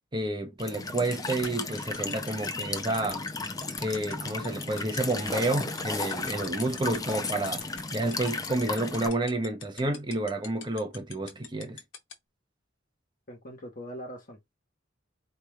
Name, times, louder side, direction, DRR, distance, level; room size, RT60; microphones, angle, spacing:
voice 1, 0.1-3.3 3.8-7.6 7.9-11.8, right 2 dB, 25° right, 0.9 m, -30 dB
Walk footsteps / Chirp tweet / Stream, 0.6-9.1, left 3 dB, 20° left, 0.6 m, -35 dB
sound 1, 1.3-12.1, left 7 dB, 85° left, 1.2 m, -42 dB
voice 2, 13.3-14.5, equal, 45° left, 1.4 m, -42 dB
3.3 x 3.2 x 4.6 m
head